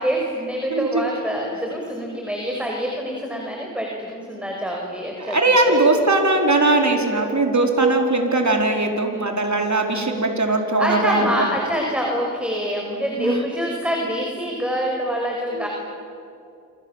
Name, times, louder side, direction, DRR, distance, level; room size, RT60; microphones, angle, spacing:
voice 1, 0.0-5.4 5.7-5.8 10.8-15.7, equal, 5° right, 0 dB, 5.6 m, -25 dB
voice 2, 0.7-1.0 5.2-11.3 13.2-13.4 15.5-15.7, right 2 dB, 55° right, 2 dB, 4.6 m, -20 dB
28.0 x 27.0 x 7.4 m, 2.7 s
wide cardioid pair, 55°, 33 cm